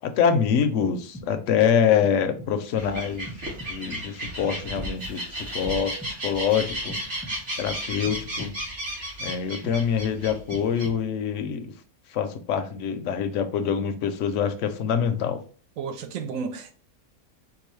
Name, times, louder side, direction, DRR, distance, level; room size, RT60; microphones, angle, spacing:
voice 1, 0.0-3.3 3.7-5.9 6.2-7.0 7.6-8.5 9.2-11.7 12.1-15.4, left 7 dB, 70° left, 0.8 m, -25 dB
sound 1, 0.8-1.6 2.0-2.8 3.3-4.1 4.4-5.2 5.6-6.5 6.9-7.7 8.0-8.8 9.3-10.1 10.5-11.3, equal, 5° right, 0.5 m, -44 dB
sound 2, 2.8-10.9, right 1 dB, 55° right, 1.6 m, -34 dB
voice 2, 15.8-16.7, right 5 dB, 70° right, 0.9 m, -32 dB
4.6 x 2.5 x 3.1 m
omnidirectional pair, 1.5 m